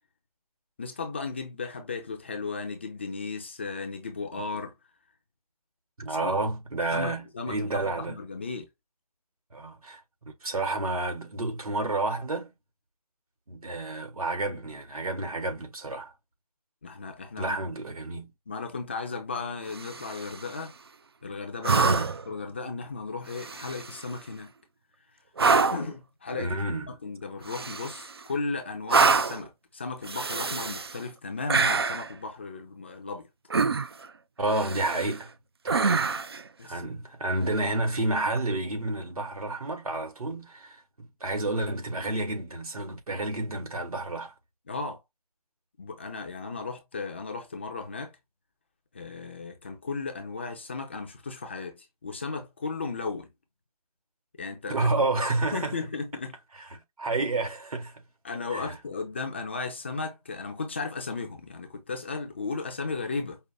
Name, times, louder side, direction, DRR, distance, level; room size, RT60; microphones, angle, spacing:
voice 1, 0.8-4.7 6.1-6.4 6.9-8.7 16.8-17.7 18.5-20.7 21.2-22.0 22.3-24.5 25.7-26.5 26.9-33.3 36.6-37.0 44.7-45.0 45.8-48.1 48.9-53.3 54.4-54.9 55.5-56.3 58.2-63.4, left 4 dB, 20° left, 0.5 m, -35 dB
voice 2, 6.0-8.2 9.5-12.5 13.5-16.1 17.4-18.3 21.7-22.1 26.4-26.9 34.4-35.3 35.6-36.1 36.6-44.3 54.7-55.8 56.5-58.0 58.5-58.8, right 2 dB, 70° right, 1.9 m, -30 dB
sound 1, 19.7-20.4 21.6-22.3 23.3-24.0 25.4-25.9 27.5-28.2 28.9-29.5 30.0-31.0 31.5-32.1 33.5-34.1 34.5-35.2 35.7-36.4 38.3-38.4, right 4 dB, 40° right, 0.4 m, -26 dB
5.3 x 2.1 x 3.4 m
figure-of-eight pair, 160°, 19 cm